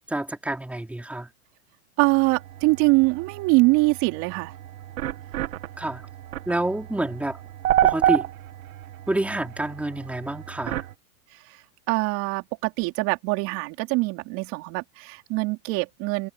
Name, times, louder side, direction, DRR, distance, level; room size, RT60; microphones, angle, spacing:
voice 1, 0.1-1.3 5.8-6.0 6.5-7.4 7.8-8.3 9.1-10.8, right 1 dB, 5° right, 4.7 m, -28 dB
voice 2, 2.0-4.5 11.9-16.3, right 26 dB, 40° right, 4.6 m, -23 dB
sound 1, 2.0-10.9, right 13 dB, 70° right, 2.3 m, -29 dB
supercardioid pair, 155°, 44 cm